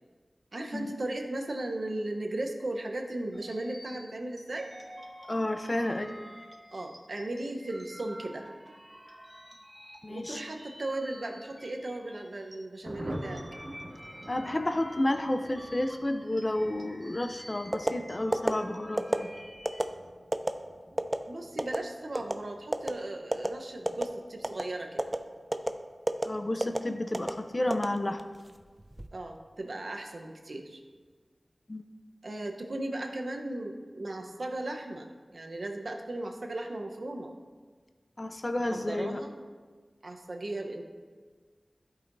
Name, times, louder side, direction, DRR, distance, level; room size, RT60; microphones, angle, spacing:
voice 1, 0.5-4.7 6.7-8.5 10.1-13.4 21.3-25.0 29.1-30.8 32.2-37.3 38.6-39.3 40.0-40.8, right 1 dB, 70° right, 2 dB, 0.8 m, -36 dB
sound 1, 3.3-12.6 12.9-19.9, equal, ahead, 1.4 m, -49 dB
voice 2, 5.3-6.1 10.0-10.4 14.3-19.3 26.2-28.2 31.7-31.8 38.2-39.2, left 1 dB, 40° left, 7 dB, 0.5 m, -31 dB
Thunder, 12.8-28.9 29.2-29.3 29.6-29.7 30.0-30.4, equal, 40° right, 1.5 m, -48 dB
sound 2, 17.7-18.0 18.3-18.5 19.0-19.2 19.7-19.8 20.3-20.5 21.0-21.2 21.6-21.8 22.2-22.4 22.7-22.9 23.3-23.5 23.9-24.1 24.4-24.6 25.0-25.2 25.5-25.7 26.1-26.3 26.6-26.8 27.1-27.3 27.7-28.4 28.8-29.1, right 1 dB, 20° right, 0.5 m, -27 dB
13.0 x 5.6 x 2.6 m, 1.5 s
wide cardioid pair, 50°, 0 cm